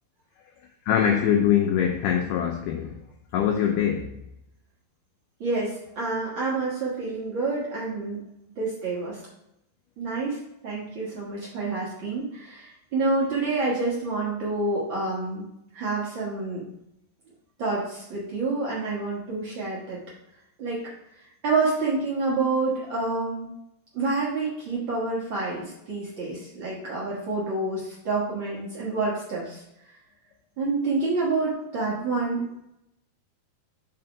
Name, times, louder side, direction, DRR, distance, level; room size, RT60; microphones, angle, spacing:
voice 1, 0.9-3.0 3.3-4.2, left 9 dB, 90° left, 1.8 m, -23 dB
voice 2, 5.4-8.2 8.5-9.2 10.0-15.4 15.7-16.6 17.6-20.0 20.6-20.8 21.4-23.5 23.9-29.6 30.6-32.4, right 3 dB, 80° right, 1.0 m, -28 dB
5.8 x 3.5 x 5.8 m
omnidirectional pair, 4.3 m